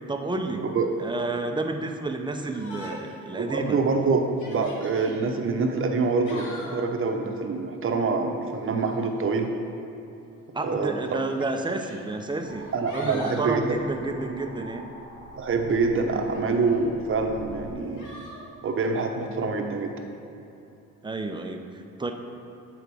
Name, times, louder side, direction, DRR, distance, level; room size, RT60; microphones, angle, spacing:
voice 1, 0.1-0.6 1.0-3.8 10.5-12.7 12.9-14.9 21.0-22.1, right 3 dB, 15° right, 5 dB, 0.6 m, -30 dB
Yell, 2.5-3.2 3.6-3.7 4.3-5.2 6.0-6.9 8.6-9.0 10.2-10.3 11.2-12.0 12.5-13.5 16.1-16.8 18.0-18.4, left 1 dB, 80° left, 1.4 m, -43 dB
voice 2, 3.3-9.5 10.6-10.9 12.7-13.8 15.4-18.1 18.6-19.9, right 4 dB, 45° right, 3 dB, 0.8 m, -26 dB
sound 1, 12.4-17.7, left 1 dB, 60° left, 1.0 m, -46 dB
8.5 x 3.9 x 4.6 m, 2.9 s
cardioid pair, 90°, 30 cm